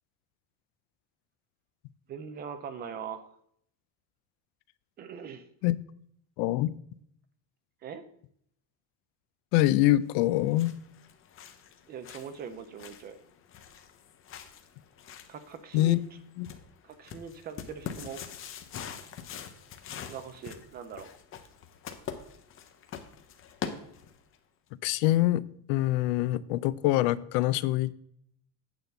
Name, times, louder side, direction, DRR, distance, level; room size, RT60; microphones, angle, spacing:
voice 1, 2.1-3.2 5.0-5.4 7.8-8.0 11.9-13.1 15.3-16.0 16.8-18.2 20.1-21.1, right 7 dB, 25° right, 9 dB, 0.3 m, -41 dB
voice 2, 6.4-6.7 9.5-10.7 15.7-16.0 16.4-16.5 24.8-27.9, left 15 dB, 75° left, 17 dB, 0.6 m, -25 dB
sound 1, 10.2-24.4, left 7 dB, 30° left, 0.6 m, -44 dB
9.0 x 3.9 x 6.8 m, 0.68 s
cardioid pair, 170°, 48 cm